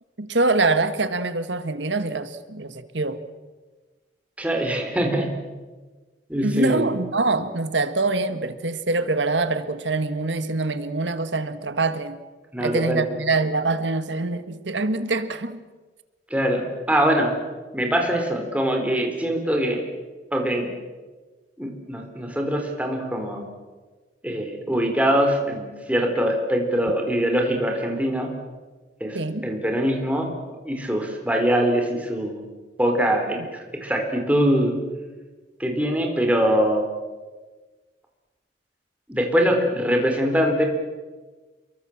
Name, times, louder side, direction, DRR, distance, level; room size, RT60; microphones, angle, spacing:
voice 1, 0.2-3.2 6.4-12.2 12.6-15.6 29.1-29.5, right 3 dB, 85° right, 11 dB, 1.7 m, -24 dB
voice 2, 4.4-5.3 6.3-6.9 12.5-13.0 16.3-17.3 17.7-19.8 20.3-20.7 21.6-23.5 24.2-28.3 29.0-30.3 30.6-32.4 32.8-34.8 35.6-36.9 39.1-40.6, equal, 10° right, 2 dB, 4.1 m, -23 dB
28.5 x 23.0 x 7.4 m, 1.3 s
head